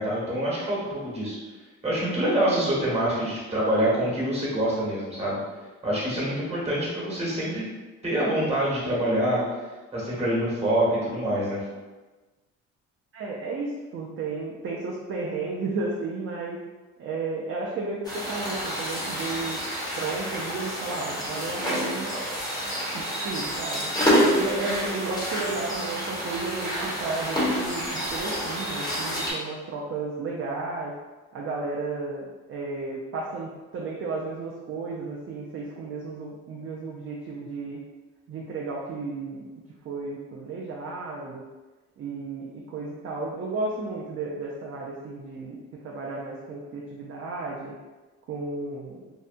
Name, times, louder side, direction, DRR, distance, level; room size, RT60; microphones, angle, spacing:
voice 1, 0.0-1.4 1.8-5.4 5.8-7.6 8.0-9.4 9.9-11.6, right 1 dB, 20° right, -6 dB, 1.2 m, -25 dB
voice 2, 13.1-16.6 17.0-19.6 20.0-22.1 22.9-23.9 24.3-31.0 31.3-37.8 38.3-39.5 39.8-41.4 42.0-47.7 48.3-49.1, right 3 dB, 45° right, -3 dB, 0.4 m, -33 dB
sound 1, 18.0-29.3, equal, 15° left, 1.0 m, -28 dB
2.7 x 2.2 x 2.5 m, 1.2 s
cardioid pair, 90°, 30 cm